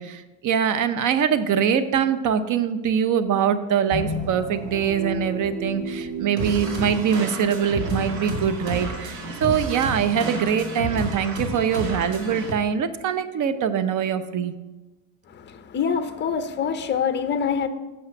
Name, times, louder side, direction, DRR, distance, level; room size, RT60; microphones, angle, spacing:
voice 1, 0.0-14.5, right 8 dB, 40° right, 12 dB, 0.8 m, -23 dB
sound 1, 3.9-12.7, right 1 dB, 60° right, 1.7 m, -35 dB
sound 2, 6.4-12.5, right 1 dB, 85° right, 2.1 m, -31 dB
voice 2, 15.3-17.7, left 7 dB, 20° left, 10 dB, 0.7 m, -25 dB
7.8 x 5.7 x 6.9 m, 1.1 s
supercardioid pair, 100°, 49 cm